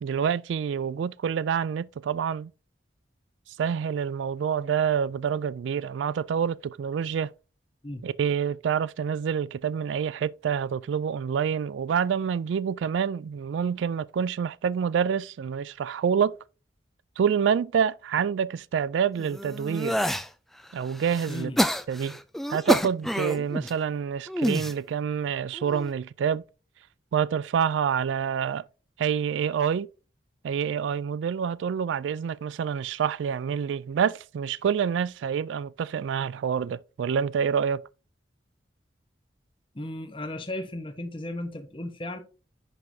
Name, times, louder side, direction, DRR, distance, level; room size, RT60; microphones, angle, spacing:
voice 1, 0.0-2.5 3.6-7.3 8.0-16.4 17.2-20.0 20.7-21.5 21.9-22.1 22.5-26.4 27.1-28.6 29.0-29.9 30.4-37.8, right 7 dB, 85° right, 0.3 m, -27 dB
sound 1, 19.2-20.3 20.8-23.7 24.3-24.7 25.5-25.9, equal, ahead, 0.3 m, -28 dB
voice 2, 21.3-21.6 39.7-42.2, left 1 dB, 30° left, 1.0 m, -35 dB
10.5 x 3.8 x 2.7 m
head